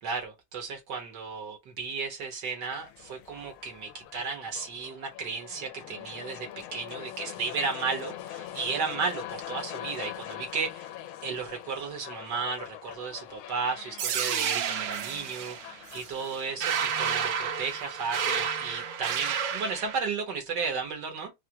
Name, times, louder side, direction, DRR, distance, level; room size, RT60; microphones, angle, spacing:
voice 1, 0.0-10.9 11.2-21.3, right 5 dB, 55° right, 1.7 m, -34 dB
sound 1, 2.7-18.7, left 12 dB, 85° left, 1.5 m, -43 dB
sound 2, 14.0-20.0, right 7 dB, 90° right, 1.5 m, -30 dB
4.4 x 2.5 x 2.8 m
omnidirectional pair, 2.3 m